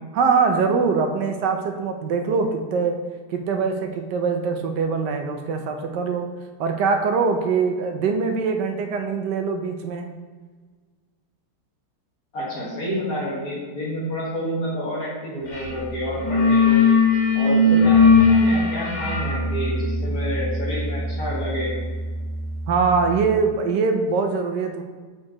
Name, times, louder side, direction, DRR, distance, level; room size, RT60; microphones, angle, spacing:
voice 1, 0.1-3.0 3.3-6.3 6.6-10.1 22.7-24.8, right 5 dB, 80° right, 5 dB, 1.2 m, -23 dB
voice 2, 12.3-16.8 17.3-21.8, equal, 55° left, -6 dB, 1.9 m, -29 dB
sound 1, 15.5-15.8 16.0-22.7, left 3 dB, 35° left, 0.8 m, -19 dB
7.3 x 4.5 x 2.9 m, 1.4 s
omnidirectional pair, 1.9 m